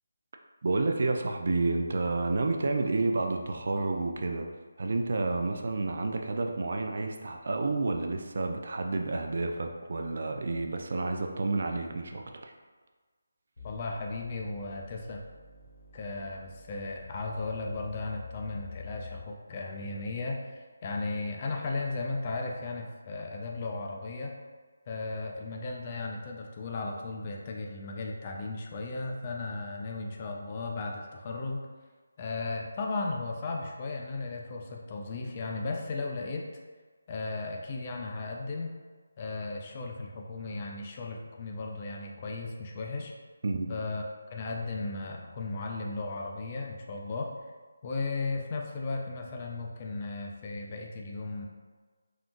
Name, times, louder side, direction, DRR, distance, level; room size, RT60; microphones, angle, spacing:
voice 1, 0.6-4.5 4.8-12.5 43.4-43.7, right 3 dB, 60° right, 3 dB, 0.3 m, -30 dB
sound 1, 13.6-19.5, left 4 dB, 65° left, 0.9 m, -48 dB
voice 2, 13.6-15.2 15.9-24.3 24.9-31.6 32.2-36.4 37.1-38.7 39.2-43.1 43.7-44.0 44.3-47.3 47.8-51.5, left 3 dB, 30° left, 1 dB, 0.4 m, -35 dB
3.7 x 2.3 x 2.5 m, 1.4 s
figure-of-eight pair, 160°, 0 cm